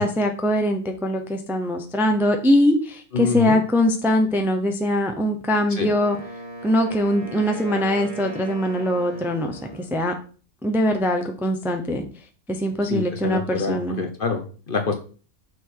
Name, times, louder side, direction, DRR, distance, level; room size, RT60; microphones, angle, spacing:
voice 1, 0.0-6.2 6.6-10.1 10.6-12.0 12.5-14.0, equal, ahead, 5 dB, 0.6 m, -22 dB
voice 2, 3.1-3.6 5.7-5.9 12.9-14.9, left 5 dB, 45° left, 5 dB, 0.9 m, -26 dB
Wind instrument woodwind instrument, 5.8-10.0, right 1 dB, 25° right, 2.2 m, -37 dB
6.2 x 4.4 x 4.7 m, 0.38 s
omnidirectional pair, 1.5 m